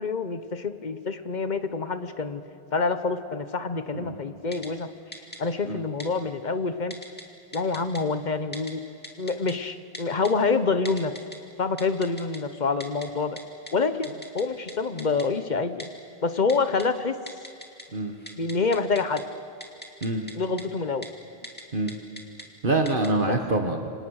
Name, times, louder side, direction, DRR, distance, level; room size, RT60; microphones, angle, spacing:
voice 1, 0.0-2.4 2.7-4.9 5.4-6.9 7.5-8.8 9.2-11.1 11.6-13.4 13.7-15.9 16.2-17.1 18.4-19.2 20.3-21.1 23.3-23.4, left 4 dB, 50° left, 10 dB, 1.1 m, -27 dB
Typing, 4.5-4.7 5.1-5.4 6.0-6.1 6.9-7.2 7.5-8.0 8.5-8.7 9.0-9.5 9.9-10.3 10.9-11.4 11.8-12.4 12.8-13.1 13.4-13.5 13.7-13.8 14.0-14.4 14.7-14.8 15.0-15.3 15.8-15.9 16.5-16.9 17.3-17.8 18.1-19.2 19.6-20.3 20.6-20.7 21.0-21.1 21.4-21.6 21.9-22.4 22.9-23.1, equal, 10° left, 2.4 m, -39 dB
voice 2, 22.6-23.9, right 2 dB, 55° right, 4 dB, 1.7 m, -25 dB
27.0 x 26.0 x 6.5 m, 2.4 s
omnidirectional pair, 1.0 m